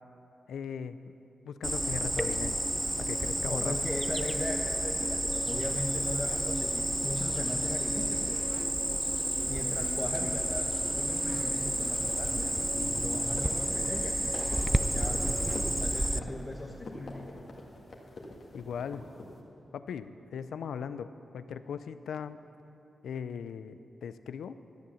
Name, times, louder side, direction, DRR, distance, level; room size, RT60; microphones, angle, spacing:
voice 1, 0.5-1.2 1.4-2.7 3.0-3.7 12.7-13.1 18.5-19.0 19.7-22.4 23.0-24.6, left 7 dB, 90° left, 13 dB, 0.4 m, -39 dB
Cricket, 1.6-16.2, right 1 dB, 15° right, 0.4 m, -30 dB
voice 2, 3.5-8.4 9.5-12.6 13.0-15.2 15.8-17.2, left 2 dB, 30° left, -1 dB, 1.0 m, -39 dB
sound 1, 11.9-19.3, left 2 dB, 60° left, 1.8 m, -44 dB
12.5 x 7.8 x 7.0 m, 2.9 s
cardioid pair, 55°, 0 cm